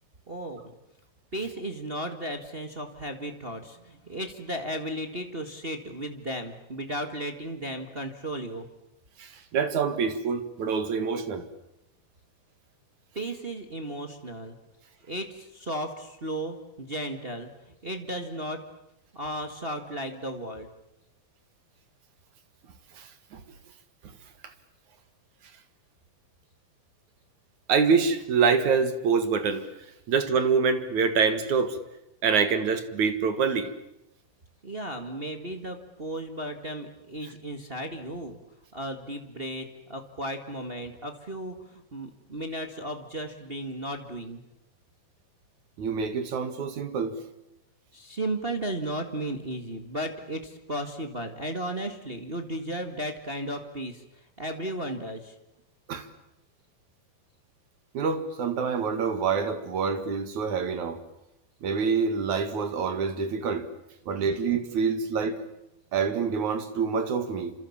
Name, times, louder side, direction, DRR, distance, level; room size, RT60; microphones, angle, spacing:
voice 1, 0.3-0.6 1.3-8.7 13.1-14.6 15.1-17.5 17.8-18.6 19.1-20.7 34.6-38.4 38.7-44.4 47.9-55.4, right 1 dB, 35° right, 0.9 m, -35 dB
voice 2, 9.2-11.4 23.0-23.4 27.7-29.7 30.1-31.8 32.2-33.7 45.8-47.2 55.9-56.1 57.9-61.0 61.6-63.7 64.1-65.4 65.9-67.5, right 5 dB, 55° right, 2.9 m, -26 dB
28.5 x 27.0 x 7.3 m
omnidirectional pair, 4.5 m